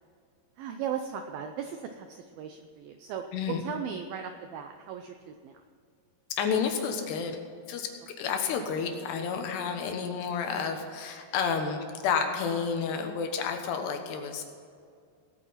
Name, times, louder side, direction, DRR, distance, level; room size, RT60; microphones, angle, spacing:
voice 1, 0.6-5.6, right 7 dB, 85° right, 6 dB, 2.1 m, -37 dB
voice 2, 6.3-7.4 7.7-14.4, left 6 dB, 75° left, 4 dB, 3.2 m, -30 dB
18.5 x 9.0 x 5.8 m, 2.3 s
omnidirectional pair, 5.1 m